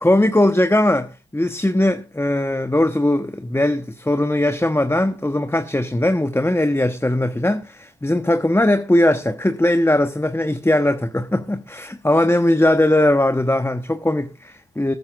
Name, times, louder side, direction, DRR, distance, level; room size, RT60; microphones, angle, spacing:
voice 1, 0.0-14.9, left 1 dB, 10° left, 1.0 m, -19 dB
20.5 x 9.6 x 2.5 m
supercardioid pair, 45°, 30 cm